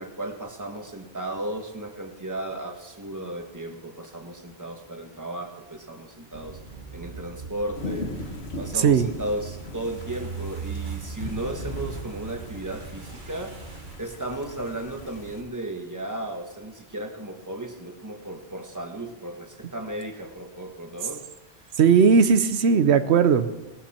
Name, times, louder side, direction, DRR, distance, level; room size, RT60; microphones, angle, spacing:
voice 1, 0.0-6.6 6.9-21.2, right 1 dB, 15° right, 3 dB, 1.5 m, -35 dB
sound 1, 6.3-13.9, right 5 dB, 50° right, 1.3 m, -39 dB
sound 2, 7.7-15.4, left 2 dB, 80° left, 2.0 m, -39 dB
voice 2, 8.7-9.1 21.8-23.5, right 6 dB, 85° right, 11 dB, 1.1 m, -18 dB
17.5 x 14.0 x 4.4 m, 1.1 s
omnidirectional pair, 1.1 m